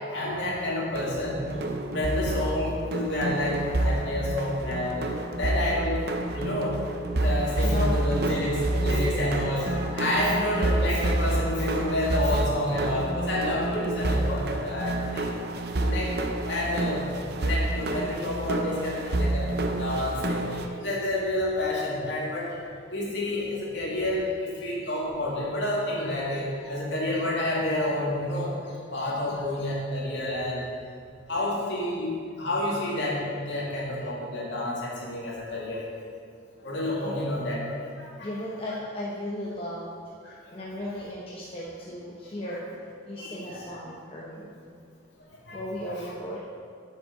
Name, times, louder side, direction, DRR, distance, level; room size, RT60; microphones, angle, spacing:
voice 1, 0.1-1.5 1.8-5.1 5.4-6.0 6.3-6.8 7.2-15.3 15.7-16.1 16.4-17.0 17.4-19.5 19.8-22.6 22.9-28.5 28.9-30.6 31.3-33.2 33.5-35.9 36.6-38.3 38.7-38.8 42.5-42.6 43.2-43.8 45.5-45.6 46.0-46.1, left 1 dB, 60° left, -5 dB, 2.5 m, -29 dB
sound 1, 0.9-20.7, right 2 dB, 50° right, 0.6 m, -29 dB
voice 2, 7.6-8.0 8.7-9.2 37.0-37.2 38.2-39.9 40.5-42.7 43.1-44.5 45.5-46.4, left 1 dB, 30° left, -5 dB, 0.9 m, -35 dB
8.3 x 5.7 x 6.7 m, 2.3 s
head